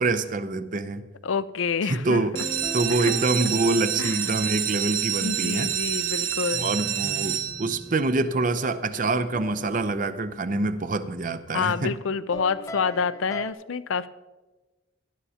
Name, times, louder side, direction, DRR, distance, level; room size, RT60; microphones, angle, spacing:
voice 1, 0.0-1.1 1.8-2.4 2.7-5.7 6.6-12.0, right 2 dB, 40° right, 12 dB, 0.6 m, -26 dB
voice 2, 1.2-2.2 3.0-3.1 4.0-4.2 5.2-6.7 11.5-14.1, left 5 dB, 75° left, 14 dB, 0.5 m, -27 dB
sound 1, 2.2-8.0 8.6-9.1 9.5-9.6 9.8-9.9 10.3-10.5, right 9 dB, 85° right, 1.1 m, -28 dB
sound 2, 2.3-5.2 6.5-11.0 12.3-13.5, left 1 dB, 15° left, 0.4 m, -41 dB
18.0 x 11.0 x 2.8 m, 1.2 s
head